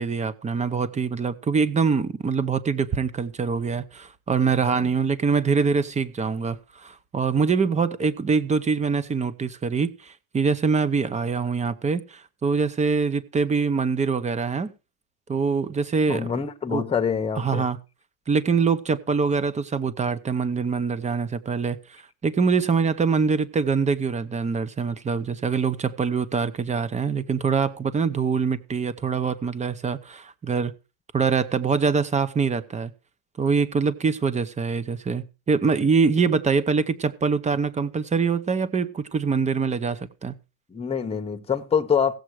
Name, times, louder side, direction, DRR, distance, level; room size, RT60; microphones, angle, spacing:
voice 1, 0.0-14.7 15.3-16.3 16.7-16.8 17.4-17.8 18.3-30.7 31.1-32.9 33.4-40.4, right 5 dB, 15° right, 0.8 m, -24 dB
voice 2, 16.1-17.6 40.7-42.1, left 7 dB, 15° left, 1.0 m, -25 dB
16.0 x 7.7 x 4.7 m
cardioid pair, 135°, 42 cm